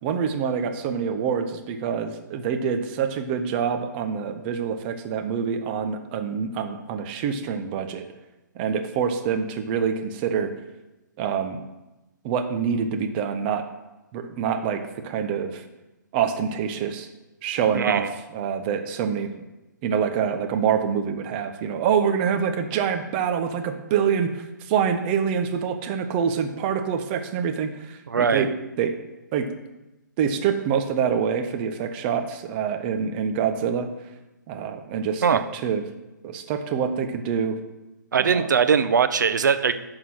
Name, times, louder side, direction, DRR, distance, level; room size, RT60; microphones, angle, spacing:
voice 1, 0.0-8.0 8.6-10.5 11.2-11.6 12.2-13.7 14.1-15.6 16.1-17.1 17.4-19.3 19.8-28.5 28.8-28.9 29.3-29.5 30.2-33.9 34.5-35.8 36.2-37.6 38.2-38.5, right 7 dB, 30° right, 6 dB, 0.9 m, -26 dB
voice 2, 17.7-18.1 28.1-28.5 35.2-35.4 38.1-39.7, right 6 dB, 70° right, 11 dB, 0.7 m, -21 dB
11.0 x 3.9 x 6.4 m, 1.0 s
hypercardioid pair, 135°, 10 cm